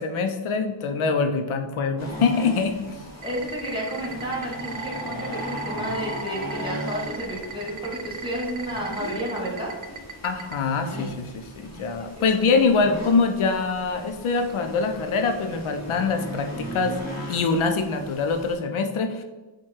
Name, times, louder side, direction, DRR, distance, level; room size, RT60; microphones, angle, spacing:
voice 1, 0.0-3.0 10.2-17.0 17.3-19.2, left 4 dB, 85° left, 7 dB, 0.5 m, -24 dB
sound 1, 2.0-18.6, equal, 35° left, 1.2 m, -37 dB
voice 2, 3.2-9.7 12.0-12.2, equal, 10° right, -4 dB, 1.5 m, -31 dB
sound 2, 3.2-10.5, right 7 dB, 45° right, 0.4 m, -36 dB
4.6 x 2.3 x 4.3 m, 1.2 s
wide cardioid pair, 85°, 48 cm